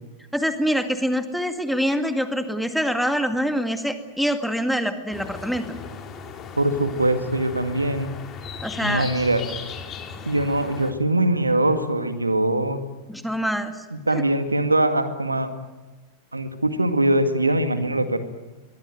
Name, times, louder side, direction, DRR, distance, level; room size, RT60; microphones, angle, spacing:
voice 1, 0.3-5.7 8.6-9.1 13.1-13.7 14.1-14.2, equal, ahead, 7 dB, 2.1 m, -25 dB
sound 1, 5.1-10.9, left 6 dB, 30° left, 3.2 m, -37 dB
voice 2, 6.6-8.1 8.8-9.4 10.3-12.8 13.9-15.5 16.3-18.2, right 1 dB, 80° right, 9 dB, 1.9 m, -22 dB
23.5 x 22.5 x 9.2 m, 1.1 s
figure-of-eight pair, 90°, 0 cm